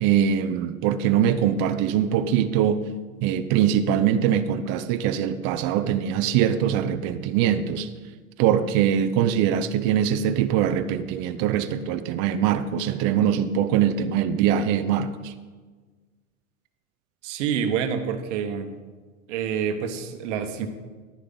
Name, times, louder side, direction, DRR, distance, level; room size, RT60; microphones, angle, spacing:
voice 1, 0.0-2.9 3.2-7.9 8.4-15.3, right 9 dB, 40° right, 10 dB, 0.6 m, -22 dB
voice 2, 17.2-18.7 19.3-20.7, right 7 dB, 60° right, 8 dB, 1.2 m, -27 dB
11.5 x 9.7 x 3.9 m, 1.4 s
hypercardioid pair, 115°, 41 cm